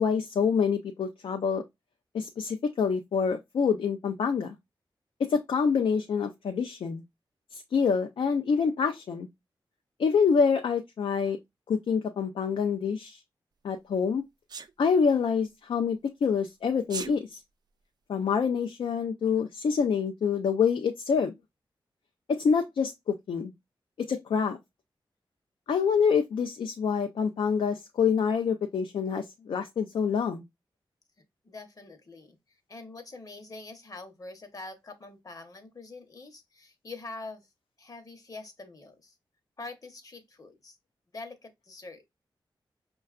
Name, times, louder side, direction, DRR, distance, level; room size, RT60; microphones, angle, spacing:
voice 1, 0.0-1.6 2.1-4.6 5.2-7.0 7.5-9.3 10.0-11.4 11.7-13.2 13.6-14.2 14.8-17.4 18.1-21.3 22.3-23.5 24.0-24.6 25.7-30.4, left 6 dB, 80° left, 0.4 m, -26 dB
Sneeze, 14.5-14.7 16.8-17.1, right 5 dB, 55° right, 0.3 m, -36 dB
voice 2, 31.4-32.4 32.7-37.5 37.8-39.2 39.6-40.8 41.1-42.1, left 3 dB, 45° left, 0.8 m, -44 dB
5.4 x 2.3 x 2.3 m
wide cardioid pair, 85°, 9 cm